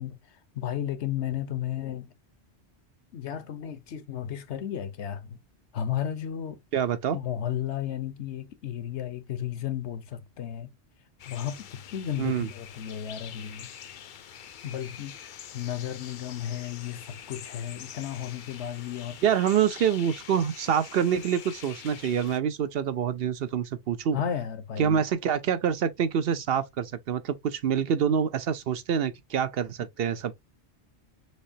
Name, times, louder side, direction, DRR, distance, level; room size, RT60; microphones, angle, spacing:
voice 1, 0.0-2.1 3.1-5.4 5.7-6.6 7.1-10.7 11.2-13.7 14.6-19.2 24.1-25.0, left 10 dB, 80° left, 1.1 m, -34 dB
voice 2, 6.7-7.2 12.2-12.5 19.2-24.2 24.8-30.4, right 8 dB, 65° right, 0.8 m, -26 dB
sound 1, 11.2-22.4, left 9 dB, 55° left, 0.6 m, -45 dB
6.3 x 2.8 x 2.7 m
omnidirectional pair, 1.2 m